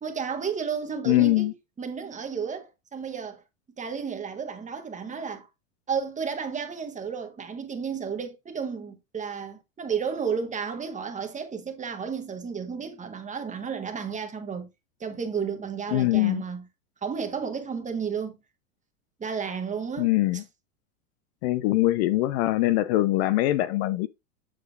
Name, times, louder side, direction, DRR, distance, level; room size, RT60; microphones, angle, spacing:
voice 1, 0.0-3.4 3.8-5.5 5.9-14.7 15.0-16.6 17.0-18.4 19.2-20.4, right 6 dB, 20° right, 1.4 m, -32 dB
voice 2, 1.1-1.5 15.9-16.4 20.0-20.4 21.4-24.1, left 17 dB, 50° left, 0.5 m, -23 dB
7.5 x 6.4 x 2.5 m
hypercardioid pair, 105°, 41 cm